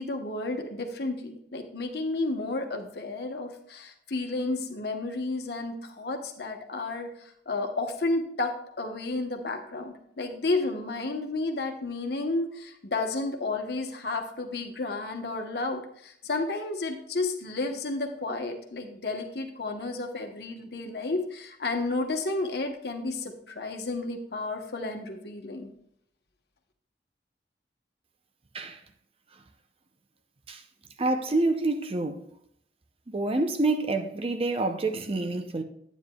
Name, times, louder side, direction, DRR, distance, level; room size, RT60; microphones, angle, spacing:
voice 1, 0.0-8.5 8.8-25.7, left 2 dB, 65° left, 1.1 m, -32 dB
voice 2, 31.0-32.3 33.1-35.6, right 2 dB, 35° right, 0.6 m, -27 dB
9.5 x 9.2 x 2.3 m
head